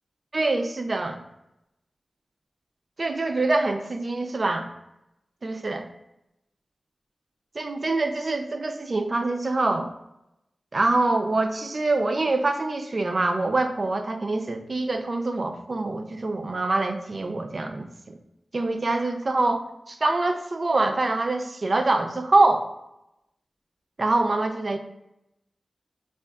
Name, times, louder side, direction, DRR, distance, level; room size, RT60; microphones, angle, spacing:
voice 1, 0.3-1.2 3.0-4.7 5.4-5.9 7.6-9.9 10.7-18.2 18.5-22.7 24.0-24.8, right 2 dB, 55° right, 6 dB, 0.3 m, -25 dB
3.4 x 2.3 x 2.3 m, 0.86 s
cardioid pair, 40°, 0 cm